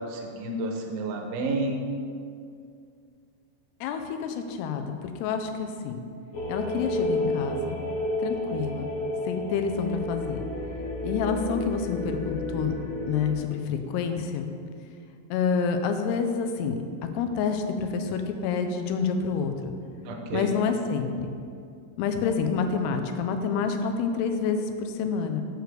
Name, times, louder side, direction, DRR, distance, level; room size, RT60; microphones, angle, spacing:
voice 1, 0.1-1.8 20.0-20.5, right 2 dB, 80° right, 1 dB, 2.3 m, -30 dB
voice 2, 3.8-6.0 6.5-7.8 8.2-8.9 9.3-10.4 11.0-12.7 13.1-14.4 15.3-16.8 17.1-19.7 20.3-21.1 22.0-25.4, left 6 dB, 85° left, 6 dB, 2.7 m, -28 dB
sound 1, 6.3-13.3, left 1 dB, 70° left, 2.5 m, -31 dB
6.7 x 4.7 x 6.5 m, 2.3 s
omnidirectional pair, 4.7 m